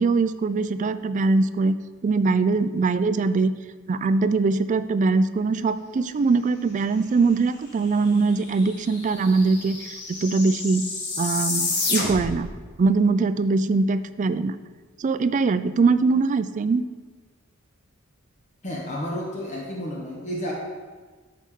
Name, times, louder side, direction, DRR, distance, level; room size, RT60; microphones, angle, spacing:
voice 1, 0.0-1.7 2.0-3.5 3.9-9.8 10.1-10.8 11.2-12.5 12.8-14.6 15.0-16.8, right 4 dB, 35° right, 13 dB, 0.3 m, -22 dB
sound 1, 8.0-8.1 8.3-12.5, left 3 dB, 55° left, 1.8 m, -29 dB
voice 2, 18.6-20.5, equal, 35° left, -3 dB, 1.0 m, -31 dB
12.5 x 4.8 x 3.7 m, 1.4 s
head